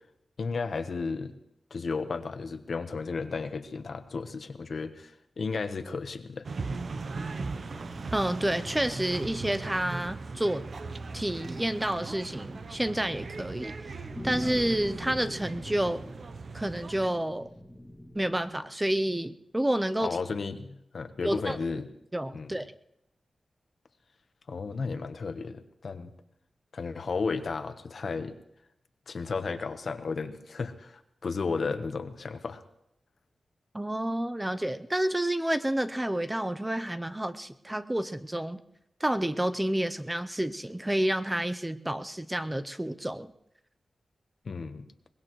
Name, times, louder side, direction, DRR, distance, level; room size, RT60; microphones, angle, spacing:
voice 1, 0.4-1.3 1.7-6.5 20.0-21.9 22.3-22.6 24.5-26.1 26.7-28.3 29.1-32.6 44.4-44.9, left 4 dB, 65° left, 8 dB, 1.1 m, -33 dB
sound 1, 6.1-18.7, left 1 dB, 10° left, 2.1 m, -46 dB
sound 2, 6.4-17.1, right 4 dB, 60° right, 0.7 m, -39 dB
voice 2, 8.1-10.6 11.1-16.0 16.5-17.5 18.1-20.2 21.2-21.6 22.1-22.7 33.7-38.6 39.0-43.3, right 1 dB, 10° right, 12 dB, 0.6 m, -29 dB
23.0 x 20.0 x 3.2 m, 0.80 s
wide cardioid pair, 100°, 0 cm